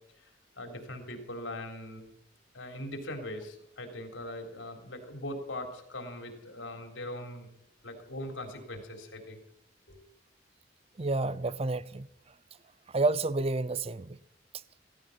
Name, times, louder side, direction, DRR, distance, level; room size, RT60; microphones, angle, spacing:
voice 1, 0.6-2.1 2.5-7.5 7.8-9.4 9.9-10.0, left 1 dB, 85° left, 3.7 m, -40 dB
voice 2, 11.0-12.1 12.9-14.2, right 3 dB, 30° right, 0.6 m, -29 dB
16.5 x 15.0 x 5.7 m
head